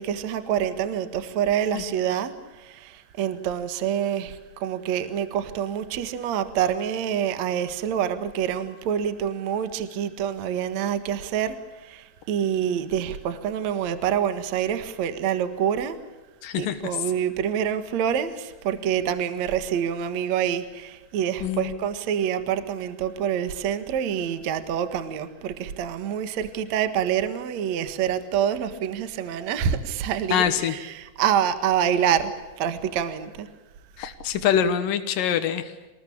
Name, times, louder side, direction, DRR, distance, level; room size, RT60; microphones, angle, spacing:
voice 1, 0.0-16.0 16.5-33.5, right 9 dB, 75° right, 10 dB, 1.6 m, -26 dB
voice 2, 16.4-16.8 21.4-21.7 30.3-30.7 34.0-35.7, left 9 dB, 80° left, 8 dB, 1.9 m, -24 dB
26.5 x 20.0 x 8.6 m, 1.2 s
omnidirectional pair, 5.8 m